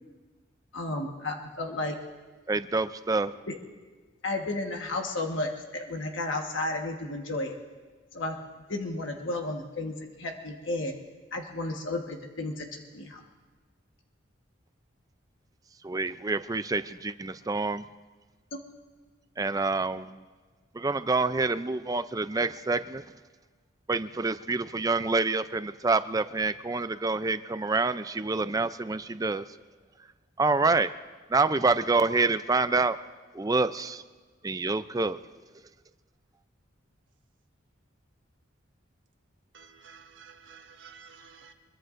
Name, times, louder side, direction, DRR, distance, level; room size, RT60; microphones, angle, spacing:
voice 1, 0.7-2.0 3.5-3.6 4.2-7.6 8.1-8.4 8.7-11.0 11.3-13.2, left 2 dB, 70° left, 2 dB, 1.3 m, -33 dB
voice 2, 2.5-3.3 15.8-17.8 19.4-20.2 20.7-23.0 23.9-29.4 30.4-30.9 31.3-33.0 33.3-34.0 34.4-35.2, right 3 dB, 20° right, 12 dB, 0.4 m, -27 dB
voice 3, 39.5-41.5, right 6 dB, 65° right, 5 dB, 1.2 m, -51 dB
24.5 x 22.0 x 2.6 m, 1.4 s
head